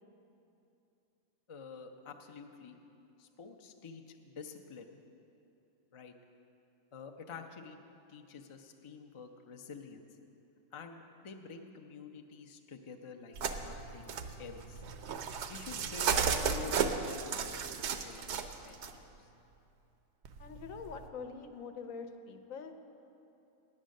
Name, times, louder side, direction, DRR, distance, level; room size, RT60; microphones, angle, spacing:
voice 1, 1.5-2.8 3.2-4.9 5.9-6.1 6.9-7.8 8.1-10.1 10.7-14.8 15.5-19.3, left 5 dB, 45° left, 3 dB, 0.4 m, -49 dB
sound 1, 13.3-18.9 20.3-21.1, right 6 dB, 65° right, 0.8 m, -34 dB
voice 2, 20.4-22.7, left 5 dB, 80° left, 6 dB, 1.1 m, -44 dB
9.1 x 8.6 x 6.4 m, 2.8 s
omnidirectional pair, 1.4 m